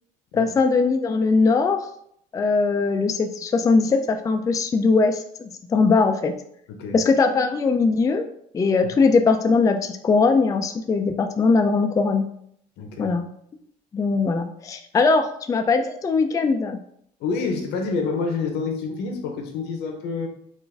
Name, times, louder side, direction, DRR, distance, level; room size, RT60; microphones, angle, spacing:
voice 1, 0.3-1.9 2.3-6.3 6.9-8.3 8.5-12.3 13.0-13.2 13.9-16.8, left 4 dB, 20° left, 6 dB, 0.3 m, -20 dB
voice 2, 6.7-7.0 12.8-13.1 17.2-20.3, left 4 dB, 85° left, 4 dB, 0.8 m, -28 dB
3.9 x 2.5 x 3.4 m, 0.68 s
cardioid pair, 110°, 17 cm